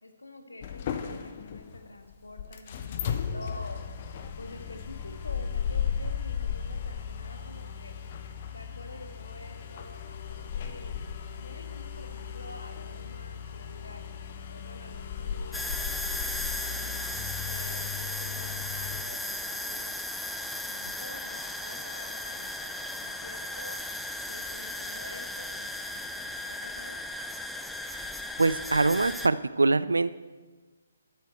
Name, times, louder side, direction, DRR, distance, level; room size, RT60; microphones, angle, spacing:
voice 1, 0.0-3.8 4.4-7.9 8.5-10.9 11.4-14.0 14.5-17.0 17.4-23.8 24.3-27.0, left 2 dB, 75° left, 5 dB, 1.5 m, -48 dB
sound 1, 0.6-19.0, left 7 dB, 35° left, 0.8 m, -36 dB
sound 2, 15.5-29.3, left 1 dB, ahead, 0.4 m, -36 dB
voice 2, 28.4-30.3, right 3 dB, 70° right, 16 dB, 0.4 m, -24 dB
12.5 x 8.1 x 4.5 m, 1.4 s
figure-of-eight pair, 135°, 0 cm